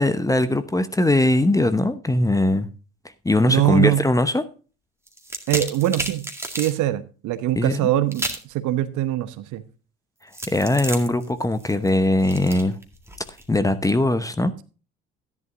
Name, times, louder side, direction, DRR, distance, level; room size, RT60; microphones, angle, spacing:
voice 1, 0.0-2.7 3.2-4.4 7.6-7.9 10.5-12.8 13.5-14.5, left 1 dB, 10° left, 0.9 m, -20 dB
voice 2, 3.5-4.0 5.5-6.2 6.6-9.6, right 14 dB, 55° right, 1.1 m, -23 dB
sound 1, 5.1-6.8 8.1-8.5 10.3-13.4, right 1 dB, 5° right, 2.0 m, -32 dB
13.5 x 11.0 x 2.6 m
figure-of-eight pair, 60°, 36 cm